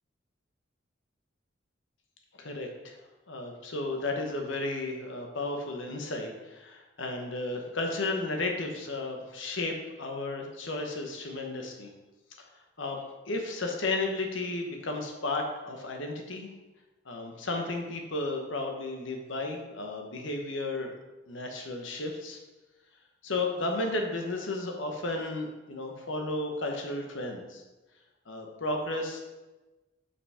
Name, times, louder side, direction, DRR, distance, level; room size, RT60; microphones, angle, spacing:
voice 1, 2.4-3.0 3.3-11.9 12.4-12.5 12.8-16.5 17.0-20.9 21.3-22.4 23.2-27.6 28.3-29.2, left 2 dB, 70° left, 2 dB, 1.1 m, -33 dB
5.6 x 5.6 x 4.9 m, 1.1 s
head